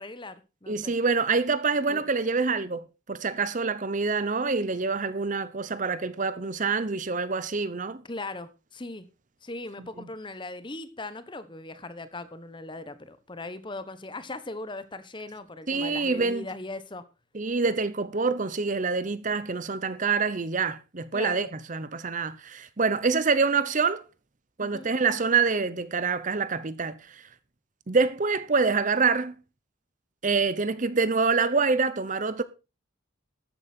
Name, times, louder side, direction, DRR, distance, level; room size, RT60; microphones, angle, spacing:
voice 1, 0.0-0.9 1.9-2.0 8.0-9.1 9.4-17.0 21.1-21.5 24.6-24.9, left 2 dB, 25° left, 1.0 m, -39 dB
voice 2, 0.7-8.0 9.8-10.1 15.7-16.5 17.3-24.0 24.6-27.2 27.9-29.3 30.2-32.4, right 4 dB, 40° right, 0.8 m, -26 dB
13.0 x 8.8 x 4.4 m
head